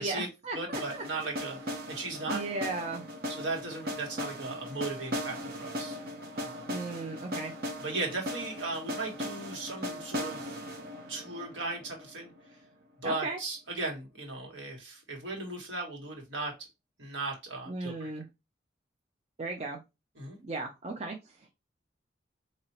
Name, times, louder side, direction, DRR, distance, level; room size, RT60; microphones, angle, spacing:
voice 1, 0.0-1.0 2.3-3.1 6.7-7.5 13.0-13.4 17.7-18.3 19.4-19.8 20.4-21.5, right 3 dB, 35° right, 2 dB, 0.5 m, -36 dB
voice 2, 0.5-2.4 3.3-6.0 6.3-6.8 7.8-10.6 11.1-12.3 13.0-16.5 17.0-18.1 20.2-20.4, right 3 dB, 80° right, -1 dB, 1.8 m, -37 dB
sound 1, 0.7-12.6, equal, 50° right, 0.9 m, -38 dB
4.4 x 2.9 x 2.8 m, 0.24 s
head